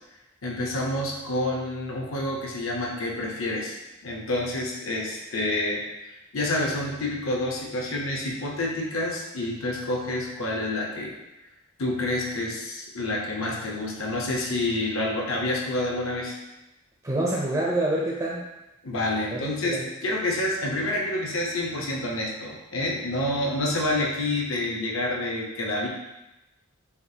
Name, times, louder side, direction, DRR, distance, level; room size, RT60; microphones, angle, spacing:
voice 1, 0.4-5.8 6.3-11.1 11.8-16.4 18.8-25.9, left 1 dB, 70° left, -2 dB, 0.9 m, -28 dB
voice 2, 17.0-18.4 19.3-19.9, right 1 dB, 20° right, -3 dB, 0.5 m, -27 dB
6.9 x 2.5 x 2.8 m, 0.97 s
head